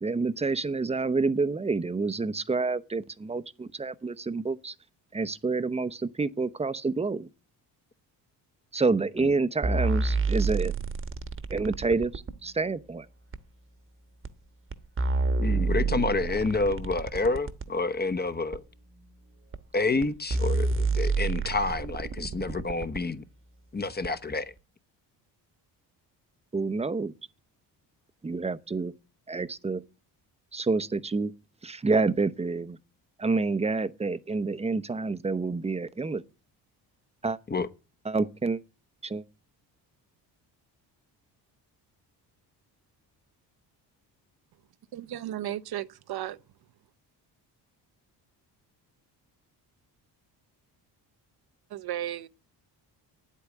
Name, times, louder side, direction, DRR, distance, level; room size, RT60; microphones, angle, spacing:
voice 1, 0.0-4.7 5.1-7.3 8.7-10.7 11.5-13.1 26.5-27.1 28.2-28.9 29.3-29.8 30.5-31.3 31.6-32.8 33.2-36.2 37.2-37.4 38.0-38.6 39.0-39.2, right 3 dB, 15° right, 0.8 m, -28 dB
sound 1, 9.6-12.4 13.3-13.4 14.2-14.3 14.7-17.7 18.5-18.6 19.5-19.6 20.0-20.1 20.3-23.0 24.0-24.1, right 3 dB, 30° right, 1.2 m, -28 dB
voice 2, 15.4-18.6 19.7-23.2 23.7-24.5 37.5-37.7, left 3 dB, 25° left, 1.0 m, -28 dB
voice 3, 44.9-46.4 51.7-52.3, right 12 dB, 65° right, 0.9 m, -34 dB
9.5 x 8.4 x 9.1 m
cardioid pair, 95°, 41 cm